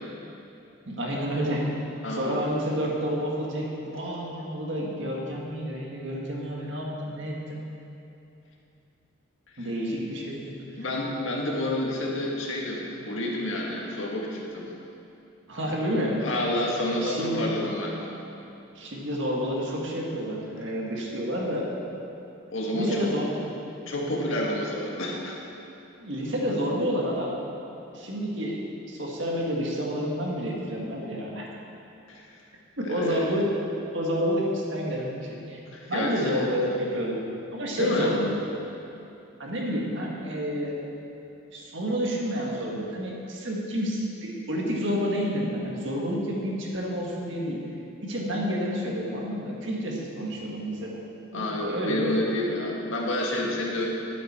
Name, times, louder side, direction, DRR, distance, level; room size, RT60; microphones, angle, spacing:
voice 1, 0.9-1.7 2.1-7.6 9.6-10.8 15.5-16.3 17.0-17.5 18.8-21.7 22.7-23.3 26.0-27.4 27.9-28.6 28.9-31.5 32.8-33.5 33.9-35.6 35.9-37.2 37.5-38.3 39.4-40.8 41.5-47.6 48.1-51.0 51.3-52.1, equal, 60° right, -2 dB, 1.8 m, -29 dB
voice 2, 2.0-2.4 9.6-9.7 10.8-14.7 16.2-18.0 22.5-23.1 23.9-25.4 32.1-32.3 32.8-33.3 35.7-36.5 37.8-38.1 51.3-53.9, left 1 dB, 70° left, -2 dB, 1.8 m, -29 dB
12.5 x 9.4 x 4.4 m, 2.8 s
head